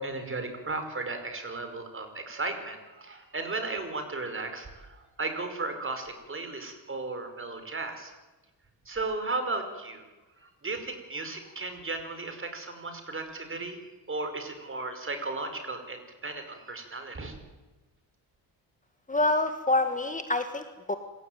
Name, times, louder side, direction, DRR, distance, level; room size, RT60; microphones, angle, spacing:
voice 1, 0.0-8.1 8.8-10.0 10.4-13.8 14.1-17.3, right 3 dB, 30° right, 7 dB, 5.1 m, -35 dB
voice 2, 19.1-21.0, left 2 dB, 20° left, 8 dB, 1.7 m, -27 dB
26.5 x 16.0 x 9.3 m, 1.1 s
cardioid pair, 105°, 40 cm